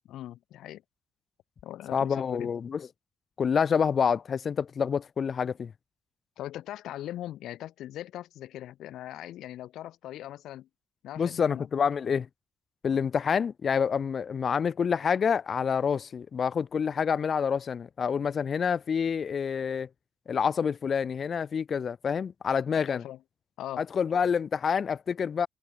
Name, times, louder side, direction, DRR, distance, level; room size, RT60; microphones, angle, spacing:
voice 1, 0.1-0.8 1.6-2.5 6.4-10.7 11.0-11.7 12.9-13.1 22.7-23.2 23.6-23.9, left 13 dB, 80° left, 1.7 m, -40 dB
voice 2, 1.9-2.9 3.4-5.7 11.2-12.3 12.8-19.9 20.3-23.0 23.8-25.5, left 6 dB, 50° left, 1.8 m, -27 dB
cardioid pair, 90°, 0 cm